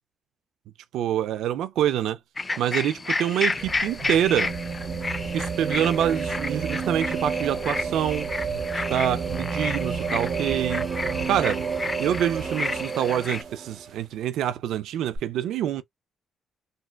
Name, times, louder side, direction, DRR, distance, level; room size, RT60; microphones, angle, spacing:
voice 1, 0.9-2.2 2.6-4.5 5.3-8.3 8.9-10.8 11.3-11.6 12.0-15.8, right 10 dB, 80° right, 0.3 m, -26 dB
sound 1, 2.4-13.4, left 3 dB, 25° left, 0.4 m, -31 dB
sound 2, 3.0-14.0 15.2-15.3, right 6 dB, 65° right, 1.0 m, -31 dB
3.9 x 2.2 x 2.2 m
cardioid pair, 90°, 0 cm